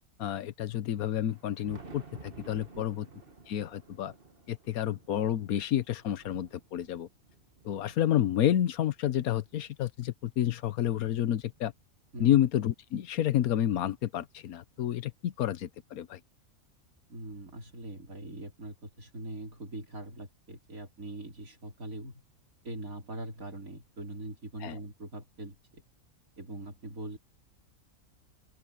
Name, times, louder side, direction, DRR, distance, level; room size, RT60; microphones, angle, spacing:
voice 1, 0.2-3.1 3.5-4.1 4.5-7.1 7.6-11.7 12.2-16.2 24.6-24.8, left 11 dB, 90° left, 1.3 m, -29 dB
Thunder, 1.1-9.7 10.3-12.1 13.2-13.3 13.9-14.0 15.8-15.9 17.3-17.4 19.0-19.1, right 4 dB, 40° right, 2.0 m, -54 dB
voice 2, 17.1-22.2 22.6-25.8 26.4-27.2, right 2 dB, 75° right, 4.4 m, -42 dB
open air
omnidirectional pair, 1.5 m